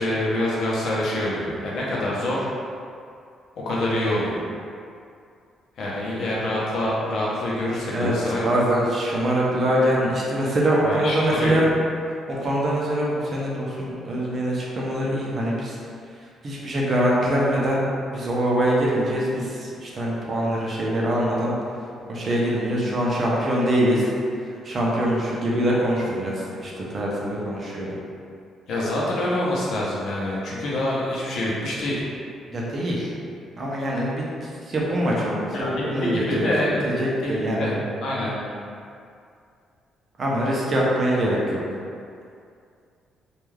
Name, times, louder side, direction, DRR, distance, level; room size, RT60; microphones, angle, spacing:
voice 1, 0.0-2.5 3.6-4.4 5.8-8.5 10.8-11.6 28.7-32.0 35.5-36.9 37.2-38.3, left 1 dB, 60° left, -6 dB, 0.6 m, -26 dB
voice 2, 8.4-11.7 12.3-15.8 16.4-17.8 18.1-21.5 22.1-24.0 24.6-27.9 32.5-33.1 33.6-34.2 34.7-36.5 36.8-37.7 40.2-41.4, right 1 dB, 35° right, -4 dB, 0.4 m, -23 dB
2.3 x 2.2 x 3.1 m, 2.4 s
cardioid pair, 160°, 0 cm